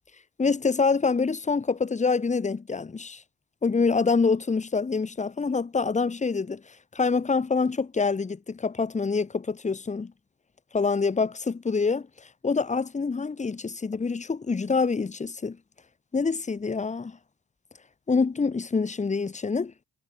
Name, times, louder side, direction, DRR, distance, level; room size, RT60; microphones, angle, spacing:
voice 1, 0.4-3.2 3.6-6.6 6.9-10.1 10.7-12.1 12.4-15.6 16.1-17.2 18.1-19.7, left 4 dB, 25° left, 1.5 m, -26 dB
cardioid pair, 90°, 30 cm